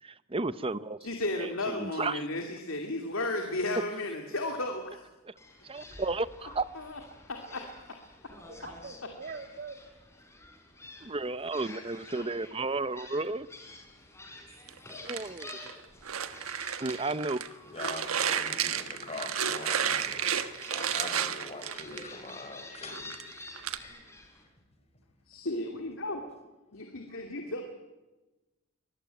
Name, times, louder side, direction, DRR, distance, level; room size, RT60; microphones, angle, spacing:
voice 1, 0.0-1.0 1.4-2.2 5.3-5.4 5.6-6.7 11.0-13.5 15.0-15.5 16.8-17.4, right 3 dB, 25° right, 0.8 m, -33 dB
voice 2, 1.0-5.0 5.8-5.9 6.7-7.0 7.3-7.9 25.3-26.2 26.7-27.6, left 2 dB, 70° left, 2.7 m, -34 dB
Gull seagull, 5.4-24.4, left 2 dB, 15° left, 5.5 m, -50 dB
voice 3, 5.5-5.8 9.1-9.3 10.2-10.8 14.0-15.1 15.9-16.0 16.6-16.8 17.5-25.5 26.7-27.0, left 2 dB, 30° left, 5.1 m, -45 dB
voice 4, 8.3-9.8 15.6-15.7 23.9-24.0, right 4 dB, 45° right, 2.3 m, -44 dB
sound 1, 14.7-17.5 17.8-22.3 22.7-23.8, right 8 dB, 80° right, 1.5 m, -32 dB
24.5 x 21.0 x 9.1 m
head